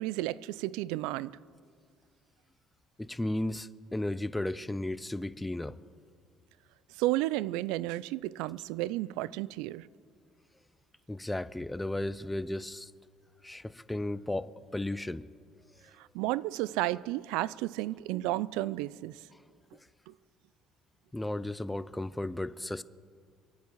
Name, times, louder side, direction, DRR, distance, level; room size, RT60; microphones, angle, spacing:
voice 1, 0.0-1.4 7.0-9.9 16.0-19.2 20.1-20.2, right 17 dB, 90° right, 0.3 m, -32 dB
voice 2, 3.0-5.8 11.1-12.9 13.4-15.3 21.1-22.8, left 1 dB, 5° left, 0.4 m, -34 dB
25.0 x 9.4 x 4.6 m
cardioid pair, 135°, 0 cm